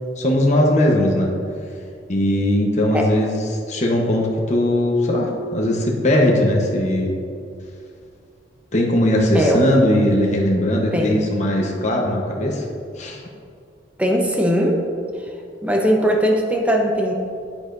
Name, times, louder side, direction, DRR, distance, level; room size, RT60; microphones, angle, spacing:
voice 1, 0.2-1.3 2.1-7.1 8.7-12.6 13.0-13.2, left 1 dB, 40° left, -1 dB, 1.0 m, -19 dB
voice 2, 9.3-9.6 10.9-11.3 14.0-14.8 15.6-17.1, equal, 10° right, 0 dB, 0.9 m, -19 dB
10.0 x 8.9 x 2.6 m, 2.4 s
head